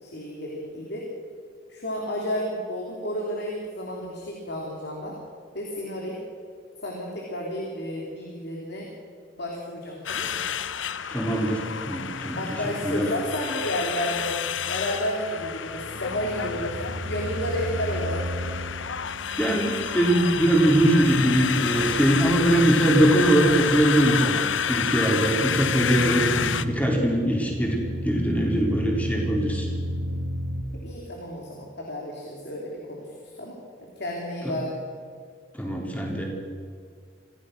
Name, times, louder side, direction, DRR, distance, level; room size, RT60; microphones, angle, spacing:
voice 1, 0.0-1.1 1.7-5.1 5.5-6.2 6.8-8.9 9.4-10.4 12.4-14.4 14.7-18.5 30.8-33.6 34.0-34.7, equal, 60° left, -1 dB, 3.3 m, -32 dB
sound 1, 10.1-26.7, left 7 dB, 75° left, 0.8 m, -29 dB
voice 2, 11.1-12.6 12.8-13.1 19.4-29.7 34.4-34.5 35.5-36.2, right 1 dB, 10° left, -1 dB, 4.0 m, -22 dB
sound 2, 15.4-30.6, equal, 70° right, 2.0 m, -34 dB
25.5 x 16.0 x 6.5 m, 2.1 s
head